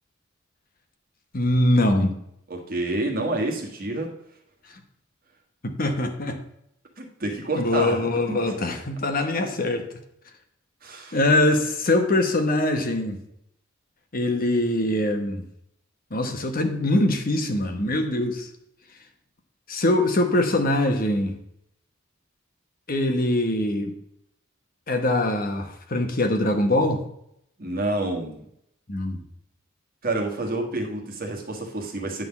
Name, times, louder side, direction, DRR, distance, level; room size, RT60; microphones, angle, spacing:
voice 1, 1.3-2.2 5.6-6.4 7.5-9.8 11.1-13.2 14.1-15.4 16.1-18.5 19.7-21.3 22.9-23.9 24.9-27.0 28.9-29.2, left 1 dB, 45° left, 6 dB, 1.0 m, -23 dB
voice 2, 2.5-4.1 7.0-8.4 10.8-11.2 27.6-28.4 30.0-32.2, right 2 dB, 45° right, 2 dB, 1.5 m, -28 dB
9.5 x 3.8 x 7.0 m, 0.74 s
head